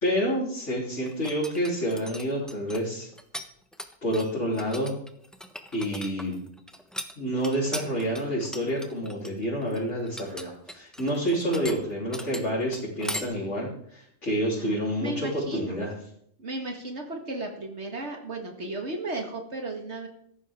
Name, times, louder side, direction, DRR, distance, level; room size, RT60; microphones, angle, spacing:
voice 1, 0.0-3.1 4.0-4.9 5.7-6.3 7.2-15.9, equal, 75° left, -6 dB, 4.1 m, -28 dB
sound 1, 1.1-3.5 3.7-13.2, equal, ahead, 1.2 m, -39 dB
voice 2, 14.6-15.8 16.4-20.1, right 2 dB, 65° right, 2 dB, 2.1 m, -35 dB
16.5 x 14.5 x 3.7 m, 0.68 s
omnidirectional pair, 1.2 m